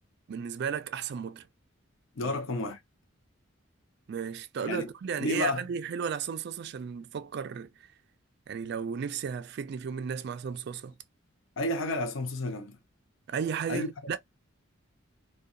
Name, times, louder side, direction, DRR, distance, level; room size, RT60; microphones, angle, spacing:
voice 1, 0.3-1.5 2.2-2.4 4.1-7.7 8.5-10.9 13.3-14.2, right 7 dB, 55° right, 0.3 m, -34 dB
voice 2, 2.2-2.8 4.6-4.9 5.2-5.6 11.6-12.8 13.7-13.9, left 1 dB, 70° left, 0.6 m, -31 dB
2.7 x 2.2 x 2.4 m
head